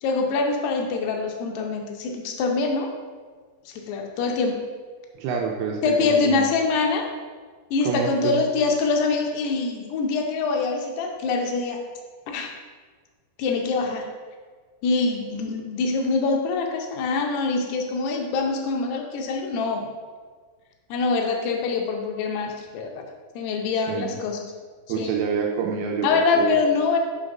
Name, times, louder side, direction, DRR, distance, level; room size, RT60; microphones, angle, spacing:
voice 1, 0.0-2.9 3.7-4.6 5.8-7.1 7.7-11.8 12.3-12.5 13.4-14.1 14.8-19.9 20.9-23.0 23.4-24.4 25.0-25.2 26.0-27.0, left 4 dB, 80° left, 2 dB, 2.6 m, -24 dB
voice 2, 5.2-6.5 7.8-8.4 23.9-24.2 24.9-26.6, right 6 dB, 80° right, 1 dB, 2.4 m, -27 dB
5.7 x 5.0 x 5.2 m, 1.5 s
omnidirectional pair, 5.1 m